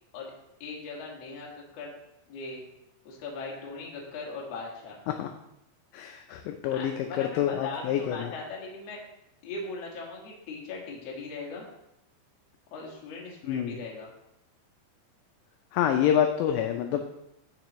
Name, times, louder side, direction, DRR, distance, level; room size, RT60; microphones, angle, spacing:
voice 1, 0.6-1.9 2.3-2.6 3.0-5.0 6.7-9.0 9.4-11.7 12.7-14.1, left 3 dB, 60° left, -2 dB, 1.6 m, -39 dB
voice 2, 5.9-8.3 13.4-13.8 15.7-17.0, left 9 dB, 85° left, 5 dB, 2.5 m, -27 dB
14.0 x 4.9 x 3.0 m, 0.83 s
omnidirectional pair, 5.5 m